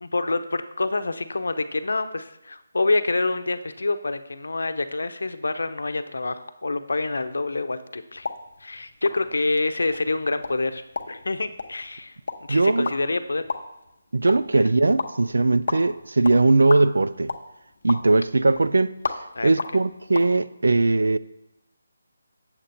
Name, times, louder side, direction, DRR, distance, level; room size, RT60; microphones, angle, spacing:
voice 1, 0.0-8.3 8.6-12.2 12.5-13.4 14.5-14.6 19.4-19.8, left 3 dB, 80° left, 0.7 m, -27 dB
sound 1, 8.2-20.3, left 4 dB, 45° left, 0.7 m, -36 dB
voice 2, 12.5-12.9 14.1-17.3 17.8-19.0 19.4-21.2, right 3 dB, 85° right, 0.4 m, -20 dB
7.9 x 7.2 x 4.3 m
hypercardioid pair, 175°, 0 cm